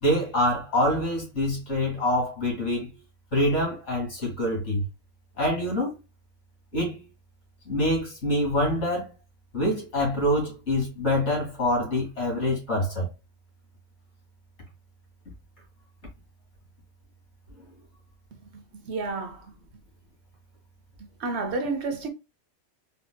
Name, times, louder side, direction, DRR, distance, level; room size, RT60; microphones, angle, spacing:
voice 1, 0.0-2.9 3.3-4.8 5.4-5.9 6.7-7.0 7.7-9.1 9.5-13.1, left 1 dB, 60° left, 2.3 m, -25 dB
voice 2, 18.3-19.5 21.0-22.1, right 3 dB, 65° right, 0.9 m, -31 dB
4.4 x 2.8 x 2.2 m
omnidirectional pair, 1.3 m